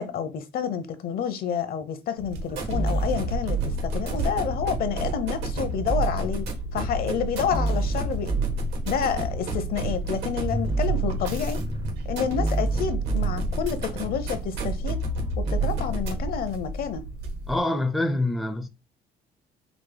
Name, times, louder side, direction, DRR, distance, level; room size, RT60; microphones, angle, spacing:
voice 1, 0.0-6.5 6.7-8.3 8.9-11.6 12.0-15.0 15.4-17.0, left 7 dB, 60° left, 0.7 m, -29 dB
sound 1, 2.2-17.6, right 1 dB, 70° right, 1.1 m, -37 dB
sound 2, 2.5-16.5, right 3 dB, 90° right, 1.6 m, -28 dB
voice 2, 17.5-18.7, left 2 dB, ahead, 0.4 m, -25 dB
4.8 x 2.1 x 3.3 m
cardioid pair, 110°, 17 cm